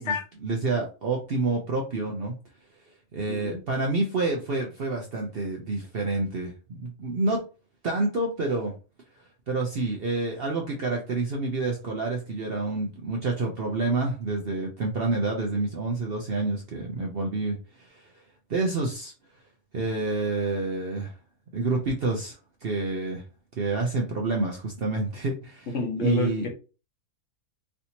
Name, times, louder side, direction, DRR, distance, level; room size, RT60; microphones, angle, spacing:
voice 1, 0.4-2.3 3.1-7.4 7.8-8.7 9.5-18.1 18.5-19.1 19.7-21.1 21.5-23.2 23.6-26.5, right 3 dB, 55° right, 0 dB, 0.7 m, -28 dB
voice 2, 3.3-3.6 25.7-26.5, left 3 dB, 60° left, 2 dB, 1.1 m, -29 dB
3.3 x 2.7 x 2.8 m, 0.33 s
omnidirectional pair, 1.6 m